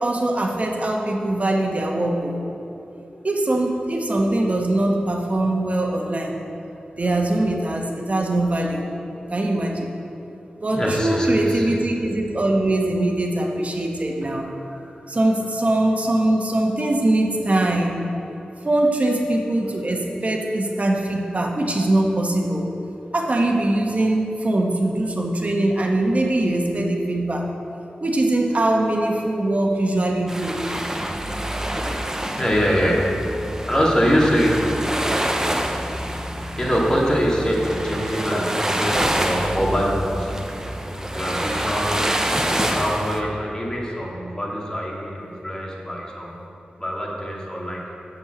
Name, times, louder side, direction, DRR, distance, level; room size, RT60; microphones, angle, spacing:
voice 1, 0.0-2.4 3.2-6.3 7.0-8.8 9.3-9.9 10.6-14.5 15.1-17.9 18.6-22.7 23.1-27.4 28.0-30.6, right 1 dB, 45° right, 0 dB, 1.5 m, -22 dB
voice 2, 10.7-11.7 14.4-15.0 32.3-33.0 33.7-34.6 36.6-40.3 41.1-42.1 42.7-46.4 46.8-47.9, equal, 20° left, -4 dB, 2.4 m, -24 dB
sound 1, 30.3-43.2, right 1 dB, 15° right, 0.9 m, -26 dB
7.1 x 6.7 x 8.0 m, 2.8 s
cardioid pair, 50°, 3 cm